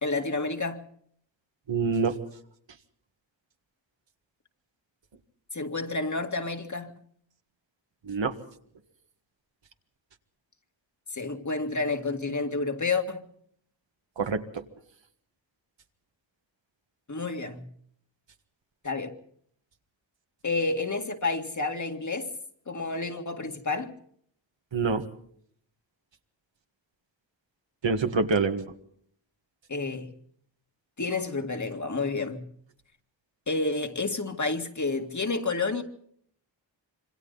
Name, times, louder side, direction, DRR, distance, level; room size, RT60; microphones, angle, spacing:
voice 1, 0.0-0.8 5.5-6.9 11.1-13.2 17.1-17.7 18.8-19.2 20.4-22.3 22.7-23.9 29.7-30.1 31.0-32.4 33.5-35.8, left 3 dB, 40° left, 2.1 m, -30 dB
voice 2, 1.7-2.2 8.1-8.3 14.2-14.6 24.7-25.0 27.8-28.7, right 4 dB, 75° right, 1.8 m, -26 dB
27.0 x 24.5 x 4.0 m
wide cardioid pair, 105°, 45 cm